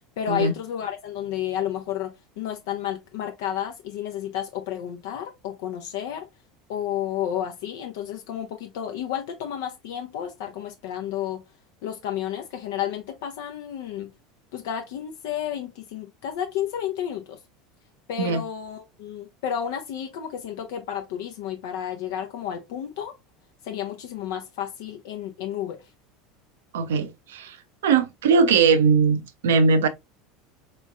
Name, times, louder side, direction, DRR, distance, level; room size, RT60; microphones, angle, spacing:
voice 1, 0.2-6.3 6.7-11.4 11.8-14.1 14.5-17.4 18.1-23.2 23.6-25.9, left 10 dB, 65° left, 0.5 m, -31 dB
voice 2, 26.7-27.6 27.8-29.9, right 5 dB, 70° right, 0.6 m, -20 dB
4.3 x 3.1 x 2.3 m
figure-of-eight pair, 75°, 0 cm